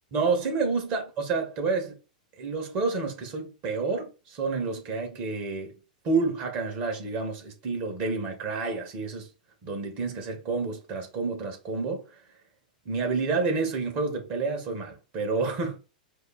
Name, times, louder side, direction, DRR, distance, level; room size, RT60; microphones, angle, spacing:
voice 1, 0.1-2.0 2.4-5.7 6.0-9.3 9.6-12.2 12.9-15.8, right 4 dB, 40° right, 1.9 m, -29 dB
4.8 x 2.2 x 4.4 m
hypercardioid pair, 105°, 5 cm